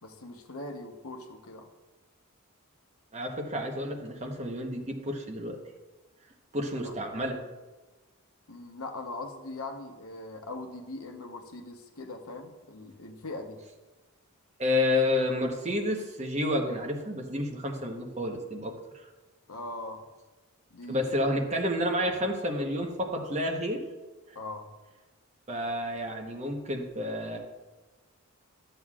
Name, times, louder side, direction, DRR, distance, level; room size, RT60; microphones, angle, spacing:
voice 1, 0.0-1.7 6.8-6.9 8.5-13.6 19.5-20.1 20.7-21.3 24.3-24.7, left 2 dB, 70° left, 4 dB, 1.0 m, -41 dB
voice 2, 3.1-5.6 6.5-7.4 14.6-19.1 20.9-23.8 24.3-24.4 25.5-27.4, left 1 dB, 30° right, 2 dB, 1.0 m, -30 dB
12.5 x 7.8 x 2.4 m, 1.2 s
head